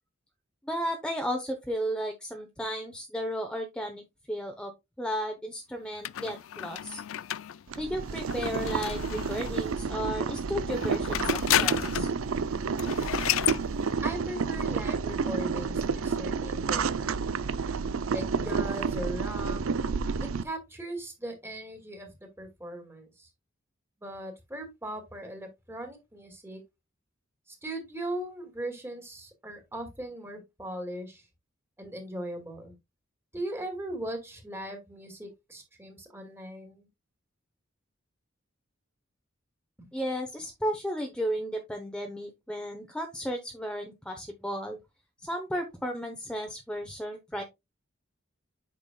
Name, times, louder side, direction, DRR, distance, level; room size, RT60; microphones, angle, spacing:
voice 1, 0.6-4.7 5.0-7.0 7.8-12.1 39.9-44.8 45.2-47.4, equal, 5° left, 0.9 m, -34 dB
sound 1, 6.0-9.7 10.7-12.2 12.5-12.6 12.8-13.6, left 12 dB, 75° left, 0.4 m, -31 dB
Boiling, 7.7-20.4, right 5 dB, 90° right, 0.6 m, -30 dB
voice 2, 14.0-17.2 18.1-19.6 20.2-23.3 24.0-26.6 27.5-31.2 31.8-32.8 33.3-36.9 39.8-39.9, right 1 dB, 10° right, 2.1 m, -39 dB
8.5 x 6.0 x 2.3 m
head